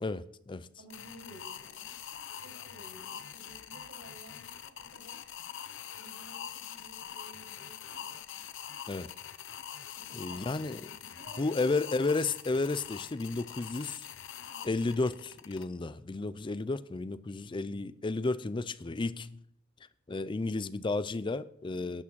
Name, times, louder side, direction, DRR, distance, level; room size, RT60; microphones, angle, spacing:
voice 1, 0.0-0.7 8.9-9.1 10.1-10.8 11.4-14.1 14.6-19.4 20.1-22.0, left 3 dB, 25° left, 0.4 m, -32 dB
voice 2, 0.8-2.0 2.4-5.3 6.0-8.2 10.0-11.6 14.5-14.9 21.7-22.0, right 1 dB, 80° right, 5.3 m, -54 dB
sound 1, 0.9-15.6, left 9 dB, 60° left, 0.7 m, -44 dB
12.0 x 6.1 x 7.4 m
head